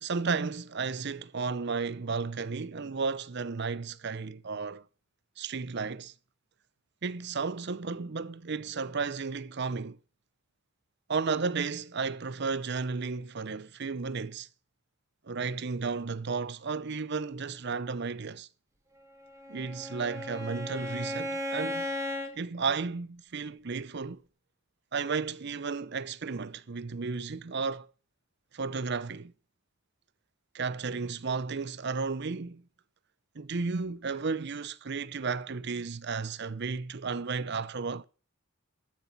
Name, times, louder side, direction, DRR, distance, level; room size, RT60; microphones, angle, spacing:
voice 1, 0.0-4.8 5.4-6.1 7.0-10.0 11.1-14.5 15.2-18.5 19.5-21.9 22.3-24.2 24.9-27.9 28.5-29.3 30.5-32.6 33.3-38.0, right 4 dB, 50° right, 0.7 m, -33 dB
Bowed string instrument, 19.2-22.4, left 1 dB, 15° right, 1.6 m, -36 dB
13.5 x 7.0 x 5.7 m
head